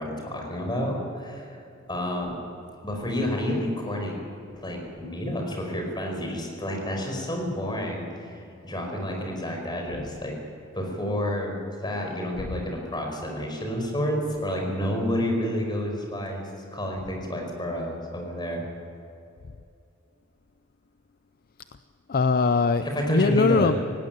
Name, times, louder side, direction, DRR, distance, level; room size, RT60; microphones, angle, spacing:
voice 1, 0.0-1.6 1.9-2.4 2.8-4.2 4.6-10.3 10.7-16.4 16.7-18.6 22.8-23.8, equal, 20° left, 1 dB, 5.1 m, -29 dB
voice 2, 22.1-23.8, left 4 dB, 45° left, 11 dB, 0.5 m, -22 dB
18.5 x 17.0 x 9.3 m, 2.5 s
head